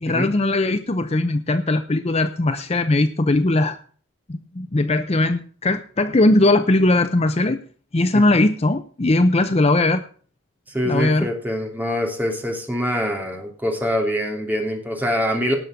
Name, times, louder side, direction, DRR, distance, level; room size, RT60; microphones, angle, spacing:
voice 1, 0.0-3.8 4.3-7.6 7.9-10.0 10.9-11.3, left 2 dB, 30° left, 10 dB, 0.6 m, -19 dB
voice 2, 10.7-15.5, equal, 10° right, 1 dB, 2.9 m, -24 dB
18.0 x 6.7 x 5.9 m, 0.44 s
head